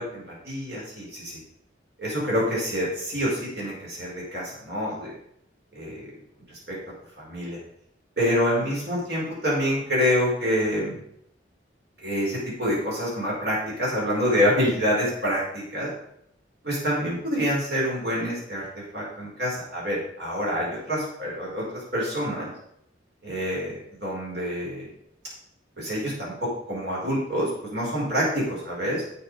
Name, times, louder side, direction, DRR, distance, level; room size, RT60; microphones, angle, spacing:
voice 1, 0.0-1.4 2.0-5.2 5.7-6.1 6.7-6.8 7.2-7.6 8.2-11.0 12.0-15.9 16.6-18.6 18.9-22.5 23.2-24.9 25.8-29.0, equal, 60° right, -5 dB, 5.1 m, -27 dB
10.0 x 8.3 x 5.1 m, 0.75 s
head